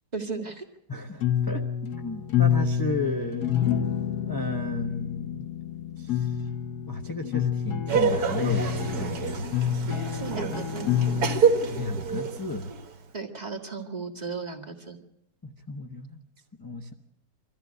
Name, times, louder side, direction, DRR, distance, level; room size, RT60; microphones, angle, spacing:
voice 1, 0.1-0.7 10.0-10.9 13.1-15.0, right 4 dB, 25° right, 2 dB, 1.9 m, -35 dB
voice 2, 0.9-1.6 2.0-3.5 4.3-5.5 6.0-6.3 6.9-9.5 11.6-12.7 15.4-16.2 16.6-16.9, left 2 dB, 15° left, 2 dB, 0.8 m, -33 dB
sound 1, 1.2-11.4, left 9 dB, 65° left, 1.5 m, -28 dB
Laughter, 7.9-13.0, right 5 dB, 60° right, 1.8 m, -27 dB
22.5 x 14.5 x 8.0 m, 0.83 s
omnidirectional pair, 1.9 m